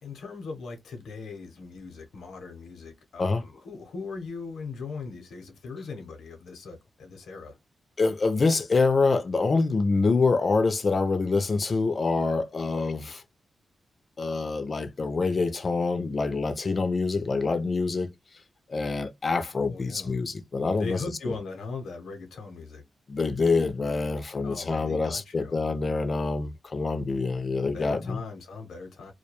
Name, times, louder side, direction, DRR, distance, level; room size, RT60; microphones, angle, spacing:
voice 1, 0.0-7.6 19.6-20.2 20.8-22.8 24.4-25.6 27.7-29.1, left 4 dB, 90° left, 0.7 m, -39 dB
voice 2, 8.0-13.2 14.2-18.1 18.7-21.0 23.1-28.2, left 3 dB, 30° left, 0.3 m, -26 dB
2.3 x 2.2 x 2.8 m
wide cardioid pair, 180°, 0 cm